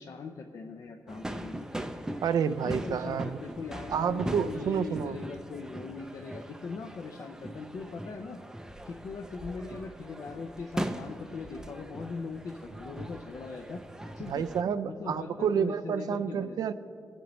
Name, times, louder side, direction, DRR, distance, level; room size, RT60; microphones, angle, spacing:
voice 1, 0.0-1.9 2.6-8.4 8.9-14.5 14.8-16.6, left 4 dB, 60° left, 3 dB, 0.5 m, -40 dB
sound 1, 1.1-14.6, right 1 dB, 10° right, 0.4 m, -40 dB
voice 2, 2.2-3.4 3.9-5.2 14.3-16.7, right 7 dB, 75° right, 13 dB, 0.4 m, -29 dB
22.5 x 7.8 x 3.1 m, 2.5 s
wide cardioid pair, 165°, 7 cm